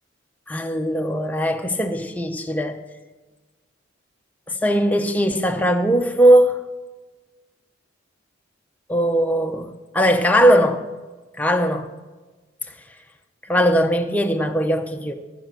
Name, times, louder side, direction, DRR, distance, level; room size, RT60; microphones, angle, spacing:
voice 1, 0.5-2.8 4.5-6.6 8.9-10.9 11.4-11.9 13.5-15.1, equal, 10° left, 0.7 m, -19 dB
14.0 x 5.1 x 7.5 m
head